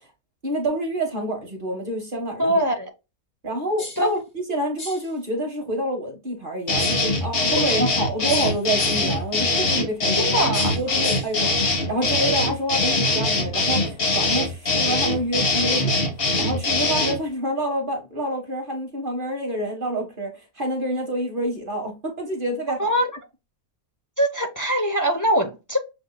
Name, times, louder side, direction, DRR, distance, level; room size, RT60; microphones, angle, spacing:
voice 1, 0.4-2.6 3.4-10.4 10.8-16.0 16.4-22.9, right 1 dB, 40° right, 1.1 m, -27 dB
voice 2, 2.4-2.9 4.0-4.1 10.1-10.7 22.8-23.1 24.2-25.8, equal, 20° left, 0.5 m, -22 dB
sound 1, 3.8-4.1 4.8-5.1 6.8-7.1 8.3-9.2 10.5-11.4, left 2 dB, 80° left, 2.5 m, -37 dB
sound 2, 6.7-17.2, left 2 dB, 45° left, 1.2 m, -22 dB
7.0 x 2.7 x 2.2 m
omnidirectional pair, 1.5 m